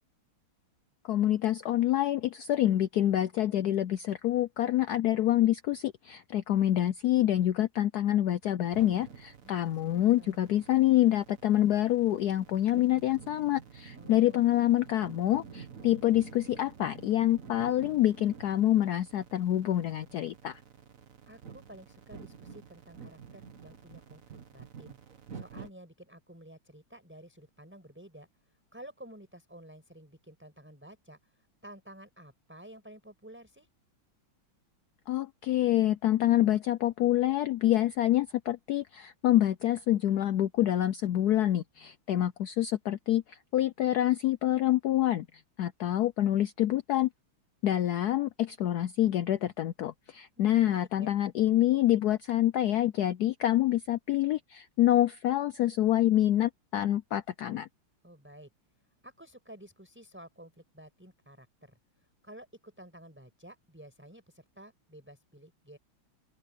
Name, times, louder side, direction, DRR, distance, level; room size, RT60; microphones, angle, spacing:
voice 1, 1.0-20.6 35.1-45.3 45.6-47.1 47.6-57.7, left 13 dB, 75° left, 0.9 m, -26 dB
sound 1, 8.7-25.7, right 6 dB, 45° right, 1.7 m, -49 dB
voice 2, 9.4-10.4 14.0-14.5 21.3-28.3 28.7-33.7 50.4-51.1 58.0-58.5 59.0-61.8 62.2-65.8, right 1 dB, 5° right, 5.4 m, -52 dB
open air
omnidirectional pair, 2.2 m